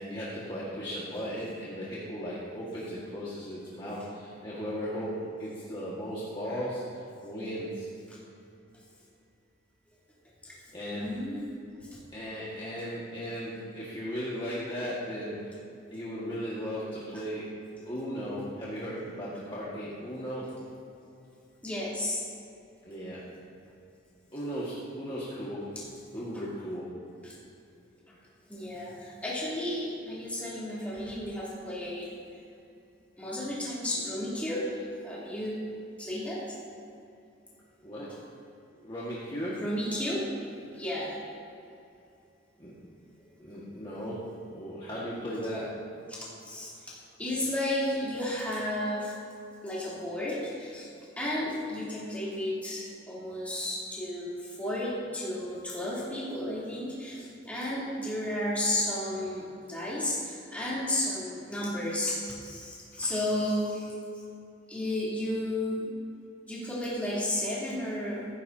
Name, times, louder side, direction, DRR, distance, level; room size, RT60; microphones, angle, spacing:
voice 1, 0.0-7.9 10.7-11.2 12.1-15.5 15.9-17.4 17.8-20.4 22.8-23.2 24.3-25.6 26.1-26.9 37.8-38.1 38.8-39.6 42.6-42.7 43.4-44.2 44.5-45.7, equal, 25° left, -9 dB, 1.8 m, -36 dB
voice 2, 10.9-11.5 11.8-12.0 21.6-22.2 25.7-25.8 26.1-26.4 27.2-27.4 28.1-28.2 28.5-32.1 33.2-34.7 35.0-35.6 36.0-36.5 39.6-40.2 40.7-41.1 46.1-49.1 49.6-50.9 51.2-64.0 64.7-65.9 66.4-68.3, left 1 dB, 5° left, -8 dB, 3.3 m, -33 dB
15.0 x 15.0 x 2.8 m, 2.7 s
head